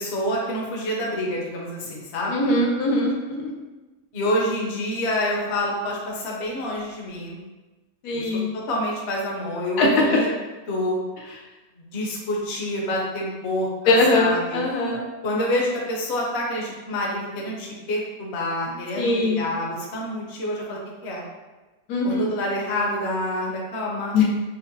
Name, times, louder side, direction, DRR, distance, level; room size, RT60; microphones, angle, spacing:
voice 1, 0.0-2.6 4.1-7.4 8.1-8.3 8.7-10.3 10.7-11.0 11.9-14.6 15.2-21.2 22.0-24.2, left 1 dB, 55° left, -2 dB, 0.9 m, -27 dB
voice 2, 2.3-3.4 8.0-8.5 9.8-10.0 13.9-15.0 19.0-19.4 21.9-22.3 24.1-24.2, left 2 dB, 90° left, -2 dB, 1.2 m, -21 dB
5.3 x 2.1 x 2.6 m, 1.2 s
omnidirectional pair, 1.6 m